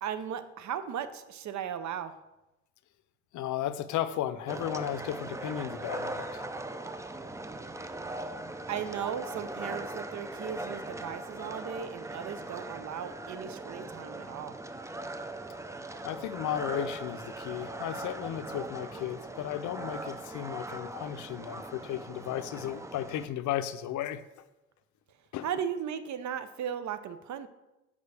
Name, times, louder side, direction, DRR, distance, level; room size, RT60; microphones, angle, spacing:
voice 1, 0.0-2.2 8.7-14.6 25.4-27.5, right 8 dB, 75° right, 11 dB, 0.6 m, -36 dB
voice 2, 3.3-6.4 16.0-24.2 25.3-25.5, left 11 dB, 90° left, 13 dB, 0.5 m, -34 dB
sound 1, 4.5-23.3, right 2 dB, 10° right, 0.4 m, -40 dB
8.0 x 5.2 x 3.3 m, 0.98 s
cardioid pair, 85°, 29 cm